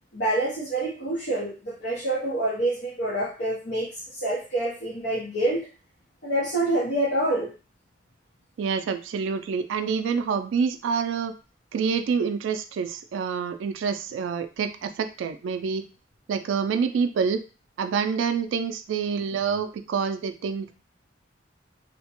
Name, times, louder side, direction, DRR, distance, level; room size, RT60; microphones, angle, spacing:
voice 1, 0.1-5.7 6.2-7.5, right 1 dB, 65° left, -5 dB, 0.7 m, -27 dB
voice 2, 8.6-11.3 11.7-15.8 16.3-17.4 17.8-20.7, right 6 dB, 85° right, 8 dB, 0.3 m, -27 dB
2.8 x 2.1 x 2.9 m, 0.33 s
head